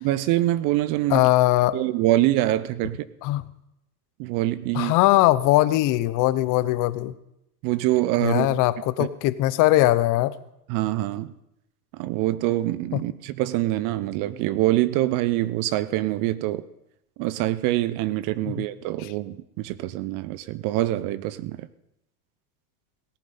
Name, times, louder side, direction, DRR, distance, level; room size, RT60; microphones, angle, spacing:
voice 1, 0.0-1.3 1.7-3.1 4.2-4.9 7.6-8.5 9.0-9.1 10.7-11.3 11.9-16.6 17.2-21.7, right 15 dB, 45° right, 17 dB, 0.6 m, -25 dB
voice 2, 1.1-1.8 3.2-3.4 4.7-7.1 8.2-10.3 12.9-13.0 18.5-18.6 19.0-19.1, left 16 dB, 40° left, 16 dB, 0.8 m, -20 dB
18.0 x 9.3 x 5.5 m, 0.83 s
supercardioid pair, 115°, 48 cm